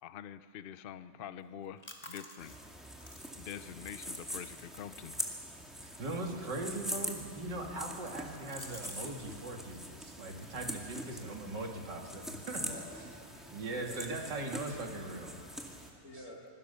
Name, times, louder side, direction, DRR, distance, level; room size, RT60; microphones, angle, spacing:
voice 1, 0.0-2.6 3.4-5.2, left 9 dB, 85° left, 13 dB, 0.4 m, -46 dB
sound 1, 1.4-9.1 9.4-9.9 10.3-12.6, left 1 dB, 15° left, 2.1 m, -56 dB
sound 2, 2.4-15.9, equal, ahead, 2.0 m, -44 dB
voice 2, 6.0-12.7 13.5-15.3, right 2 dB, 90° right, 2 dB, 2.9 m, -40 dB
voice 3, 12.6-14.0 15.4-16.5, left 1 dB, 55° left, -1 dB, 3.2 m, -51 dB
26.5 x 21.5 x 6.9 m, 2.4 s
omnidirectional pair, 1.8 m